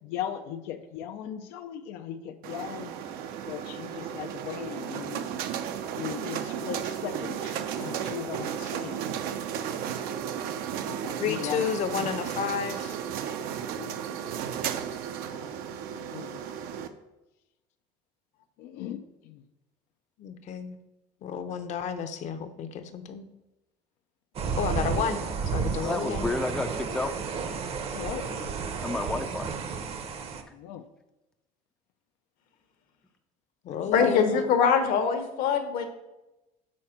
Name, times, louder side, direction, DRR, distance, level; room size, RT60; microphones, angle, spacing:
voice 1, 0.0-2.9 3.5-5.2 5.9-9.7 10.8-11.7 12.0-12.1 13.8-13.9 16.0-16.4 18.6-19.0 19.2-19.4 24.4-24.6 27.9-28.5 30.5-30.8 33.8-34.1, left 10 dB, 85° left, 5 dB, 0.6 m, -38 dB
sound 1, 2.4-16.9, right 8 dB, 75° right, 0.6 m, -34 dB
voice 2, 11.2-13.0 20.2-20.8 21.2-23.2 24.6-25.2 25.5-26.3 33.6-34.4, left 7 dB, 50° left, 8 dB, 0.7 m, -31 dB
sound 2, 24.4-30.4, right 5 dB, 40° right, 0.7 m, -32 dB
voice 3, 25.8-27.1 28.8-29.5, left 2 dB, 5° left, 6 dB, 0.4 m, -31 dB
voice 4, 33.9-35.8, left 6 dB, 65° left, 6 dB, 1.1 m, -24 dB
6.4 x 4.3 x 5.7 m, 0.97 s
cardioid pair, 135°, 16 cm